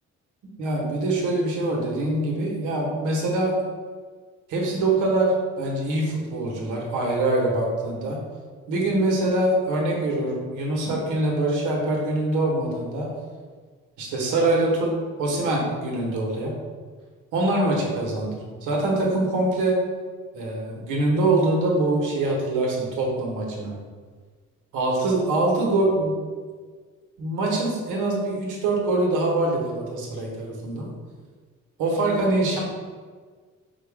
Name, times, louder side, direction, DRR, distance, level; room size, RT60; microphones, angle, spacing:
voice 1, 0.6-3.5 4.5-8.2 8.7-13.1 14.0-14.9 15.2-16.5 17.3-19.8 20.3-23.7 24.7-26.1 27.2-30.9 31.8-32.6, right 2 dB, 90° right, -2 dB, 1.1 m, -24 dB
4.4 x 2.3 x 4.6 m, 1.5 s
cardioid pair, 90°, 30 cm